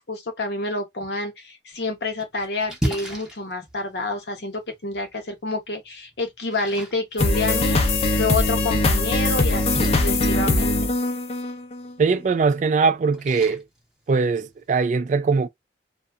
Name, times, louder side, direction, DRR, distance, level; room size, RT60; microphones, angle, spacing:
voice 1, 0.0-10.9, left 2 dB, 65° left, 0.8 m, -28 dB
Splash splatter, 1.7-14.7, equal, 5° right, 0.7 m, -38 dB
sound 1, 7.2-11.9, left 2 dB, 35° left, 0.4 m, -21 dB
voice 2, 12.0-13.6 14.1-15.5, right 4 dB, 45° right, 0.3 m, -21 dB
2.7 x 2.1 x 2.4 m
head